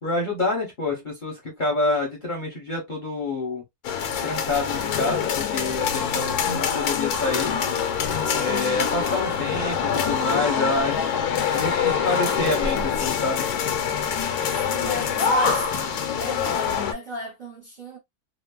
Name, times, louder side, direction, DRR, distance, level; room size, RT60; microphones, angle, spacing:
voice 1, 0.0-3.6 4.2-7.6 8.3-11.0 11.5-13.5, left 2 dB, 40° left, 0.8 m, -27 dB
sound 1, 3.8-16.9, left 7 dB, 75° left, 1.1 m, -25 dB
voice 2, 14.5-15.7 16.2-18.0, left 1 dB, 40° right, 0.7 m, -35 dB
3.0 x 2.0 x 2.3 m
omnidirectional pair, 1.7 m